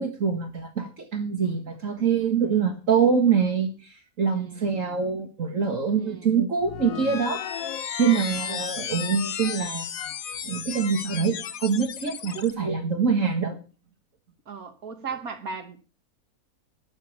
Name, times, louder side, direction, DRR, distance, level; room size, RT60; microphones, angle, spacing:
voice 1, 0.0-3.7 4.2-9.9 10.4-13.6, right 6 dB, 60° right, 2.0 m, -25 dB
voice 2, 4.3-4.7 6.0-6.3 8.1-8.3 12.3-12.5 14.5-15.8, right 5 dB, 85° right, 2.1 m, -37 dB
sound 1, 6.6-12.5, left 9 dB, 70° left, 1.3 m, -34 dB
11.5 x 7.3 x 7.2 m
omnidirectional pair, 1.5 m